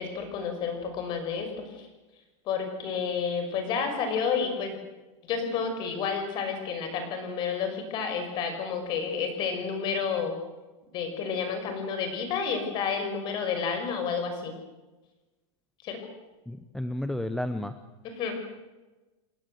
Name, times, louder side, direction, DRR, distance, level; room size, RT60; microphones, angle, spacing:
voice 1, 0.0-1.9 2.5-4.8 5.2-10.4 10.9-14.6 15.8-16.0 18.0-18.4, left 6 dB, 25° left, 6 dB, 5.9 m, -30 dB
voice 2, 16.5-17.7, left 1 dB, ahead, 9 dB, 0.8 m, -32 dB
28.5 x 22.0 x 8.0 m, 1.1 s
supercardioid pair, 180°, 17 cm